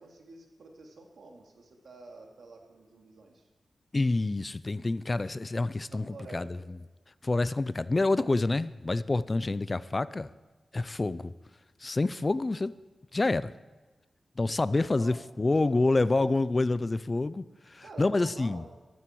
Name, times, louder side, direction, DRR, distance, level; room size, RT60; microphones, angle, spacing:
voice 1, 0.0-3.4 5.9-6.7 14.9-15.2 15.5-16.4 17.8-18.8, right 3 dB, 75° right, 2.6 m, -49 dB
voice 2, 3.9-6.6 7.2-10.3 10.7-11.3 11.8-12.8 13.1-13.5 14.4-18.6, left 2 dB, 30° left, 0.4 m, -27 dB
13.5 x 13.5 x 4.6 m
wide cardioid pair, 100°, 0 cm